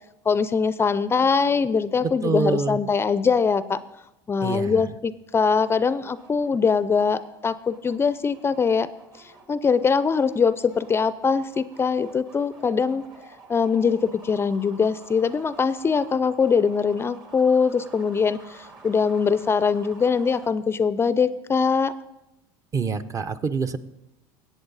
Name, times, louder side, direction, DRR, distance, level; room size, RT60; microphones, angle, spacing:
voice 1, 0.3-3.8 4.3-8.9 9.2-13.0 13.5-21.9, left 5 dB, 25° left, 15 dB, 0.4 m, -22 dB
voice 2, 2.0-2.8 4.4-4.9 22.7-23.8, right 4 dB, 30° right, 10 dB, 0.7 m, -26 dB
sound 1, 5.8-20.5, right 4 dB, 45° right, 2.4 m, -50 dB
18.0 x 8.1 x 4.0 m, 0.93 s
supercardioid pair, 90°, 10 cm